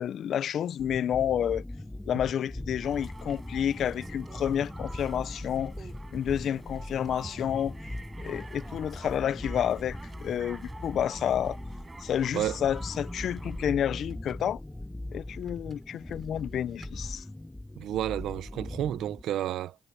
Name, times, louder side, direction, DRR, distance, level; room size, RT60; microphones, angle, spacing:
voice 1, 0.0-1.6 2.1-5.7 6.1-7.7 8.2-11.6 12.0-14.6 15.1-17.2, left 9 dB, 80° left, 0.8 m, -30 dB
sound 1, 0.8-19.2, left 1 dB, 15° left, 6.3 m, -40 dB
sound 2, 2.5-2.8 3.2-5.3 5.7-6.1 6.5-7.5 8.2-9.9 10.3-10.4 13.8-14.5 15.4-17.0, right 6 dB, 60° right, 4.3 m, -56 dB
sound 3, 2.8-13.7, right 3 dB, 30° right, 5.3 m, -47 dB
voice 2, 17.8-19.8, right 12 dB, 85° right, 0.7 m, -31 dB
supercardioid pair, 45°, 0 cm